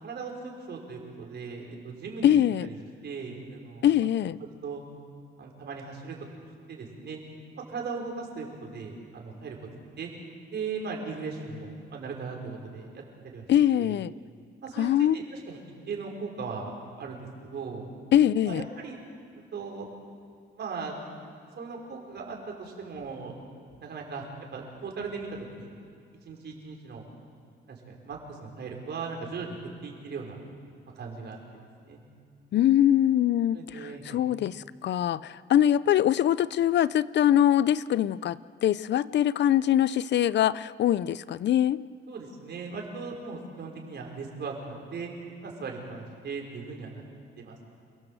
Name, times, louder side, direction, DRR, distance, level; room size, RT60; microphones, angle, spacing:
voice 1, 0.0-2.8 3.0-3.9 4.6-4.8 5.4-6.2 6.7-7.2 7.7-9.6 10.0-10.1 10.5-13.0 13.3-13.4 13.8-13.9 14.6-15.6 15.9-16.7 17.0-17.8 18.4-19.0 19.5-19.9 20.6-21.0 21.5-23.3 23.8-24.3 24.5-25.7 26.2-27.1 27.7-29.6 29.8-30.4 30.9-31.4 31.8-32.0 33.5-34.2 42.1-45.1 45.4-47.0 47.4-47.6, right 4 dB, 60° right, 5.5 m, -38 dB
voice 2, 2.2-2.7 3.8-4.4 13.5-14.1 14.8-15.2 18.1-18.6 32.5-41.8, left 11 dB, 60° left, 0.6 m, -23 dB
29.0 x 17.0 x 7.9 m
cardioid pair, 90°, 20 cm